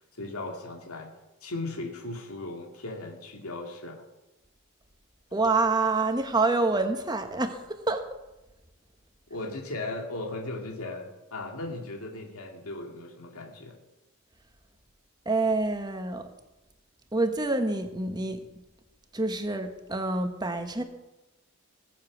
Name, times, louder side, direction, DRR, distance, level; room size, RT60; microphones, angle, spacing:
voice 1, 0.1-1.1 1.4-4.0 9.3-13.8, left 2 dB, 85° left, 2 dB, 2.3 m, -37 dB
voice 2, 5.3-8.0 15.2-16.3 17.1-18.5 19.1-20.8, right 3 dB, 20° right, 7 dB, 1.2 m, -27 dB
20.0 x 7.4 x 7.2 m, 1.0 s
head